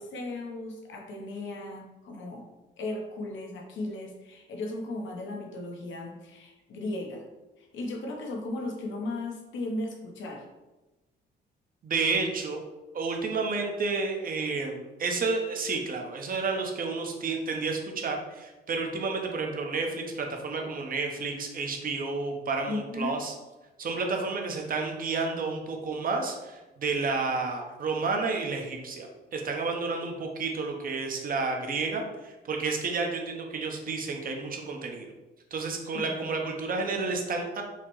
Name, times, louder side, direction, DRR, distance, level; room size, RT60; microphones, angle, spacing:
voice 1, 0.0-2.5 2.8-7.2 7.6-10.4 22.7-23.2 35.9-36.4, left 2 dB, 70° left, 1 dB, 0.9 m, -36 dB
voice 2, 11.8-12.6 12.9-23.3 23.8-35.1 35.5-37.6, right 4 dB, 45° right, 2 dB, 0.8 m, -31 dB
5.6 x 2.1 x 3.1 m, 1.1 s
cardioid pair, 90°, 20 cm